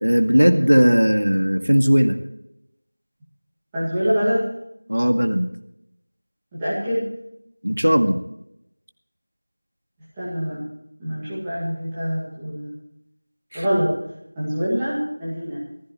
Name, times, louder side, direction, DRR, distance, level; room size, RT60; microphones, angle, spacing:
voice 1, 0.0-2.1 4.9-5.5 7.6-8.2 13.5-13.6, equal, 90° right, 6 dB, 1.9 m, -17 dB
voice 2, 3.7-4.4 6.5-7.1 10.2-10.6 11.0-12.7 13.5-13.9 14.4-15.6, equal, 5° right, -11 dB, 2.1 m, -24 dB
19.5 x 15.0 x 3.2 m, 0.81 s
figure-of-eight pair, 180°, 0 cm